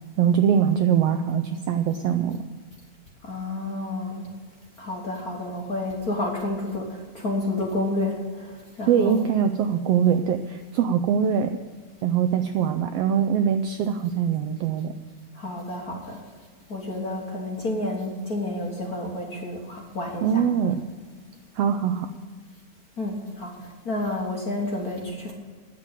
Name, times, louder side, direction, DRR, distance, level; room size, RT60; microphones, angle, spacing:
voice 1, 0.2-2.4 8.9-11.5 12.0-14.9 20.2-20.9 21.6-22.1, right 8 dB, 80° right, 7 dB, 1.4 m, -22 dB
voice 2, 3.2-4.3 4.8-9.2 15.3-16.2 16.7-20.5 23.0-25.3, left 2 dB, 45° left, -1 dB, 1.3 m, -30 dB
9.7 x 7.6 x 8.9 m, 1.5 s
omnidirectional pair, 3.4 m